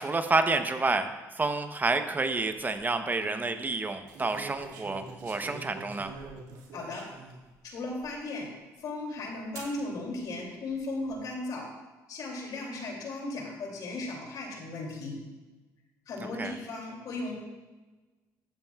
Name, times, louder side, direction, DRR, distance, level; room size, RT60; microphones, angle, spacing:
voice 1, 0.0-6.1 16.4-16.5, right 3 dB, 25° right, 7 dB, 0.8 m, -29 dB
sound 1, 2.6-2.8 4.1-7.4 8.0-8.1 9.6-9.8 10.7-11.1, right 4 dB, 80° right, 2.1 m, -45 dB
voice 2, 6.7-7.1 7.6-8.5 8.8-11.7 12.1-15.2 16.1-17.3, left 2 dB, 65° left, 0 dB, 2.7 m, -36 dB
14.5 x 8.8 x 2.3 m, 1.2 s
supercardioid pair, 75°, 7 cm